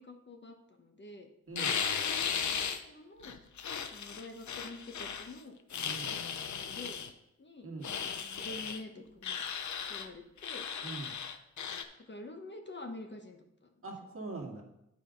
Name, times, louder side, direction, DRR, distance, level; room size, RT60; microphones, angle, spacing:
voice 1, 0.0-1.3 1.9-3.4 3.9-5.6 6.5-7.0 7.4-7.7 8.2-9.4 9.9-10.7 12.0-13.8, left 2 dB, 40° left, 4 dB, 1.1 m, -47 dB
voice 2, 1.5-1.8 5.8-6.2 7.6-7.9 10.8-11.1 13.8-14.6, right 3 dB, 45° right, 0 dB, 1.9 m, -42 dB
sound 1, 1.6-2.8 3.2-5.3 5.7-7.1 7.8-8.8 9.2-10.1 10.4-11.8, left 7 dB, 75° left, 0.7 m, -36 dB
9.0 x 5.0 x 5.2 m, 0.84 s
wide cardioid pair, 85°, 29 cm